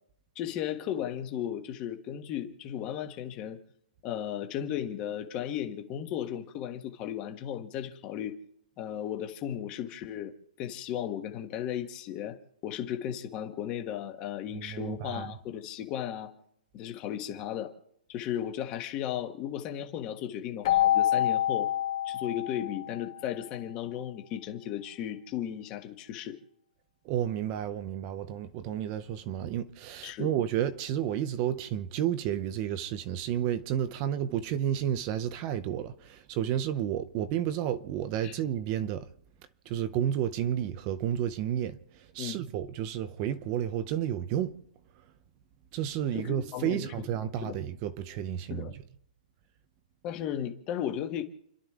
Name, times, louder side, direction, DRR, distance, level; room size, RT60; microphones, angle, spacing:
voice 1, 0.3-3.6 4.0-8.4 8.8-16.3 16.7-17.7 18.1-21.7 22.0-26.4 30.0-30.3 38.2-38.3 42.2-42.4 46.1-46.9 47.4-47.6 48.5-48.7 50.0-51.2, left 10 dB, 20° left, 1.3 m, -35 dB
voice 2, 14.5-15.3 27.0-39.0 39.7-41.8 42.1-44.6 45.7-48.8, right 10 dB, 20° right, 0.7 m, -31 dB
Keyboard (musical), 20.6-23.3, left 12 dB, 35° left, 1.9 m, -27 dB
30.0 x 12.0 x 3.7 m
hypercardioid pair, 175°, 5 cm